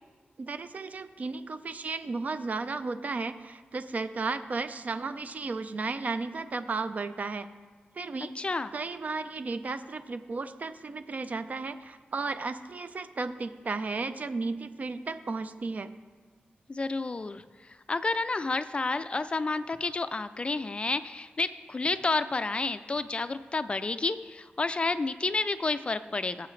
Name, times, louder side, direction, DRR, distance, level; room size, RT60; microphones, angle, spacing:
voice 1, 0.4-7.5 7.9-8.3 8.7-15.9, right 3 dB, 45° right, 11 dB, 0.4 m, -34 dB
voice 2, 8.4-8.7 16.7-26.5, left 3 dB, 30° left, 12 dB, 0.3 m, -30 dB
16.0 x 7.6 x 3.2 m, 1.5 s
wide cardioid pair, 140°, 4 cm